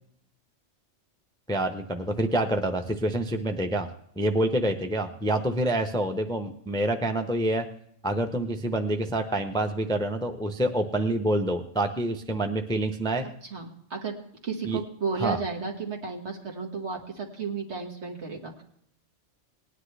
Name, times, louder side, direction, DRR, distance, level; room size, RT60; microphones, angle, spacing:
voice 1, 1.5-3.9 4.2-7.7 8.0-13.3 14.6-14.8 15.2-15.4, right 1 dB, 5° left, 6 dB, 0.5 m, -27 dB
voice 2, 13.4-14.2 14.4-18.6, right 5 dB, 65° right, 1 dB, 2.0 m, -33 dB
18.5 x 9.9 x 3.3 m, 0.70 s
omnidirectional pair, 1.2 m